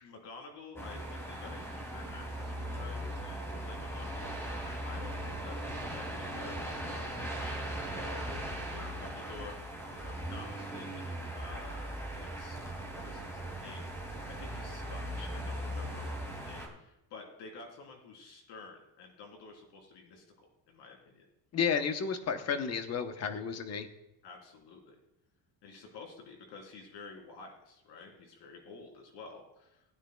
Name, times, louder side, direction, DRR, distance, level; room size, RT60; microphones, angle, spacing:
voice 1, 0.0-21.3 24.2-25.0 25.6-29.8, left 4 dB, 70° left, 1 dB, 3.5 m, -51 dB
sound 1, 0.8-16.7, right 1 dB, 5° left, 2.3 m, -39 dB
voice 2, 21.5-23.9, left 6 dB, 35° left, 7 dB, 1.0 m, -32 dB
18.5 x 9.6 x 2.3 m, 0.87 s
cardioid pair, 155°, 43 cm